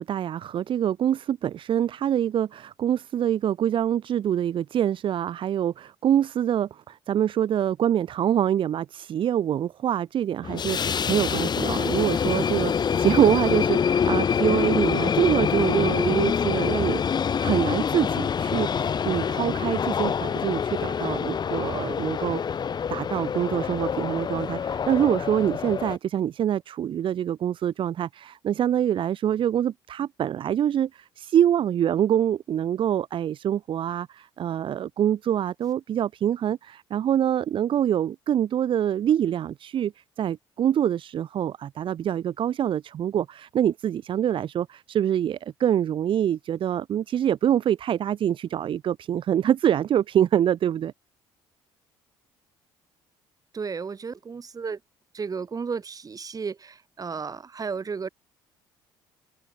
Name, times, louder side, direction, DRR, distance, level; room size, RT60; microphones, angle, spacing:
voice 1, 0.0-17.0 17.4-22.4 22.9-39.9 40.2-50.9, right 10 dB, 55° right, 1.2 m, -25 dB
sound 1, 10.4-26.0, left 7 dB, 45° left, 2.0 m, -26 dB
voice 2, 53.5-54.8 55.1-58.1, right 5 dB, 35° right, 3.1 m, -33 dB
hypercardioid pair, 65°, 11 cm